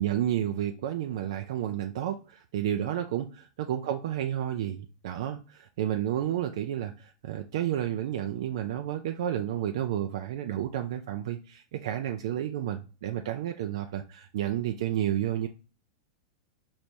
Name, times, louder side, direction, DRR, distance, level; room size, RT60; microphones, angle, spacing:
voice 1, 0.0-15.5, right 11 dB, 70° right, 6 dB, 0.4 m, -31 dB
4.6 x 3.2 x 2.7 m, 0.34 s
hypercardioid pair, 125°, 3 cm